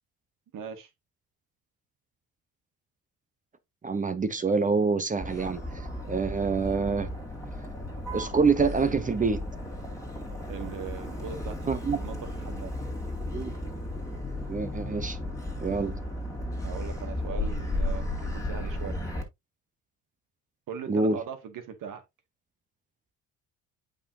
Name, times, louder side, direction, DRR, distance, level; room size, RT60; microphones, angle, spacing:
voice 1, 0.5-0.9 10.5-12.7 16.6-19.0 20.7-22.0, right 7 dB, 60° right, 2.0 m, -40 dB
voice 2, 3.8-5.6 6.1-7.1 8.1-9.4 11.7-12.0 13.3-13.5 14.5-15.2 15.6-16.0 20.9-21.2, right 4 dB, 20° right, 0.8 m, -26 dB
Motor vehicle (road), 5.2-19.2, left 1 dB, 10° left, 2.4 m, -34 dB
8.4 x 5.5 x 2.7 m
cardioid pair, 120°, 36 cm